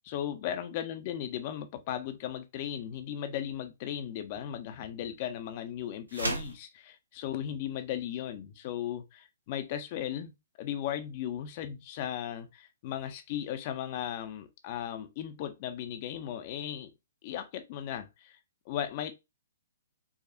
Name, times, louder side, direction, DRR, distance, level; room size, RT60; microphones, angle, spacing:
voice 1, 0.0-16.9 17.2-18.4 18.7-19.1, left 10 dB, 40° left, 0.4 m, -36 dB
sound 1, 6.1-6.6, right 2 dB, 80° right, 0.8 m, -33 dB
4.8 x 2.2 x 2.5 m
figure-of-eight pair, 120°, 0 cm